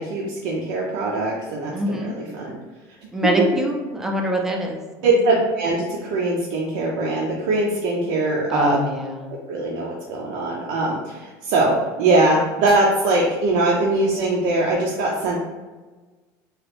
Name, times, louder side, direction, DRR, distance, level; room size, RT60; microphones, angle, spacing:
voice 1, 0.0-2.6 5.0-8.8 9.3-15.5, right 2 dB, 75° right, -3 dB, 0.5 m, -22 dB
voice 2, 1.7-2.1 3.1-4.8 8.5-9.3, equal, 5° right, 0 dB, 0.4 m, -23 dB
2.9 x 2.3 x 3.3 m, 1.3 s
cardioid pair, 155°, 8 cm